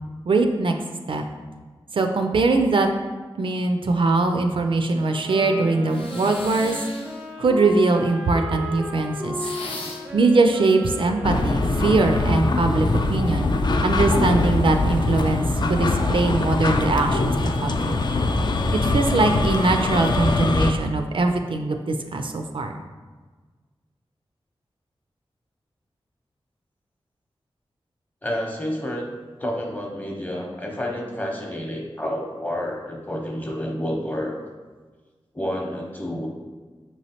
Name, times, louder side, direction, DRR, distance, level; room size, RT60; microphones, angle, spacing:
voice 1, 0.3-0.7 1.1-1.2 1.9-2.9 3.4-6.8 7.4-9.3 10.1-13.5 13.8-17.3 17.6-18.0 18.7-22.7, right 3 dB, 60° right, 4 dB, 0.4 m, -21 dB
Wind instrument woodwind instrument, 5.1-13.4, equal, 10° right, 0.5 m, -35 dB
sound 1, 5.9-7.3 9.3-10.2, left 2 dB, 70° left, 0.7 m, -37 dB
sound 2, 11.2-20.7, left 2 dB, 50° left, 0.3 m, -22 dB
voice 2, 28.2-29.1 29.4-34.3 35.3-36.3, equal, 15° left, 0 dB, 0.8 m, -29 dB
5.4 x 3.1 x 2.8 m, 1.4 s
wide cardioid pair, 80°, 10 cm